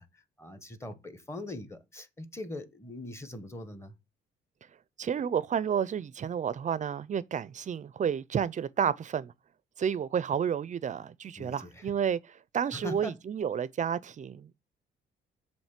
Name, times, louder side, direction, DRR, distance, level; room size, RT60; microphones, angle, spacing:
voice 1, 0.0-3.9 11.4-11.9 12.7-13.2, left 1 dB, 15° left, 1.0 m, -41 dB
voice 2, 5.0-9.3 9.8-12.2 12.5-14.6, right 8 dB, 40° right, 0.4 m, -31 dB
7.2 x 3.1 x 5.8 m
cardioid pair, 90°, 20 cm